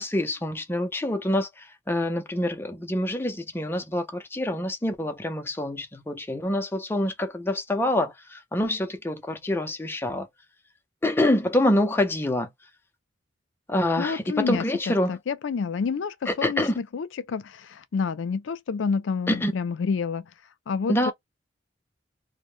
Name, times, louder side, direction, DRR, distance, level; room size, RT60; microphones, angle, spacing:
voice 1, 0.0-10.3 11.0-12.5 13.7-15.2 16.3-16.8 19.3-19.5 20.9-21.1, left 1 dB, 10° left, 0.4 m, -26 dB
voice 2, 14.0-20.3 20.7-21.1, left 5 dB, 80° left, 0.4 m, -29 dB
2.1 x 2.0 x 3.0 m
head